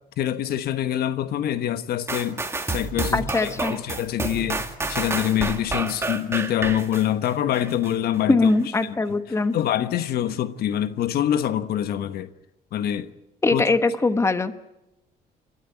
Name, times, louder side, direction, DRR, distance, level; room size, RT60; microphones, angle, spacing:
voice 1, 0.2-2.4 2.7-8.5 8.8-9.2 9.5-12.3 12.7-13.1 13.5-13.7, left 11 dB, 65° left, 1.2 m, -25 dB
sound 1, 2.1-7.9 8.4-8.5, right 3 dB, 15° right, 2.1 m, -29 dB
voice 2, 3.1-3.7 8.3-9.5 13.4-14.5, left 3 dB, 15° left, 1.2 m, -21 dB
29.0 x 12.5 x 9.6 m
cardioid pair, 110°, 17 cm